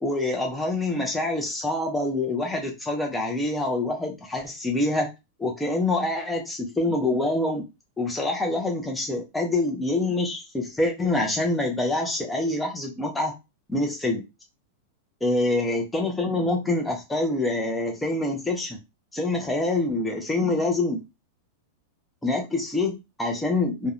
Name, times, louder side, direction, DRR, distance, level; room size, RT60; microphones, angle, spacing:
voice 1, 0.0-5.1 5.4-7.6 8.0-13.3 13.7-14.2 15.2-18.8 19.1-21.0 22.2-23.9, left 2 dB, 5° left, 0 dB, 0.4 m, -26 dB
2.9 x 2.1 x 2.4 m, 0.24 s
supercardioid pair, 175°, 0 cm